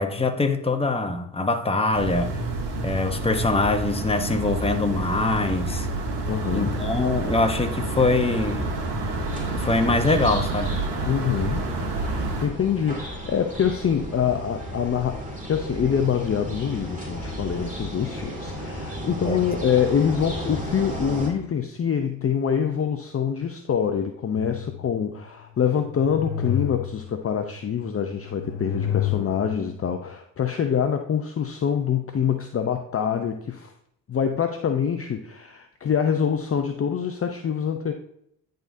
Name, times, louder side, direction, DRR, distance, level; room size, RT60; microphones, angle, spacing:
voice 1, 0.0-2.4 2.8-5.9 6.5-8.7 9.2-9.3 9.5-10.8 19.2-19.4, left 3 dB, 15° left, 1.0 m, -23 dB
sound 1, 1.9-12.5, right 2 dB, 75° right, 1.5 m, -28 dB
voice 2, 6.3-6.8 11.1-11.7 11.9-33.7 34.1-37.9, left 7 dB, 35° left, 0.6 m, -25 dB
sound 2, 9.3-21.3, equal, 20° right, 2.4 m, -35 dB
sound 3, 24.4-25.2 25.7-27.3 27.9-29.8, left 11 dB, 80° left, 0.6 m, -30 dB
10.0 x 3.8 x 2.6 m
supercardioid pair, 55°, 41 cm